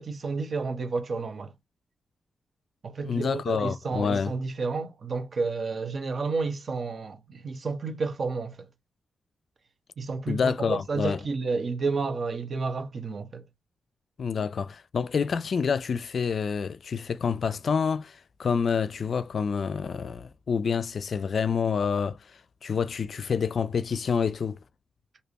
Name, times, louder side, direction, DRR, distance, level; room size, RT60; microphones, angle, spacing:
voice 1, 0.0-1.5 2.8-8.7 10.0-13.4, right 4 dB, 50° right, 1.2 m, -31 dB
voice 2, 3.0-4.3 10.3-11.2 14.2-22.2 22.6-24.6, left 6 dB, 55° left, 0.5 m, -27 dB
3.4 x 2.8 x 3.0 m
cardioid pair, 105°, 0 cm